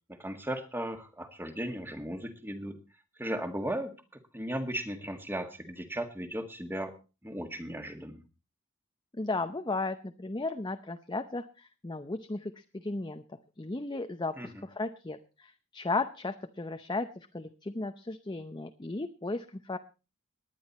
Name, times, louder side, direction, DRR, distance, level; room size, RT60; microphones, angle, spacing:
voice 1, 0.1-2.8 3.2-3.9 4.3-6.9 7.2-8.2 14.4-14.5, right 1 dB, 10° right, 7 dB, 1.8 m, -36 dB
voice 2, 9.1-13.2 13.6-19.8, left 3 dB, 20° left, 8 dB, 0.7 m, -35 dB
19.5 x 10.0 x 4.3 m, 0.32 s
head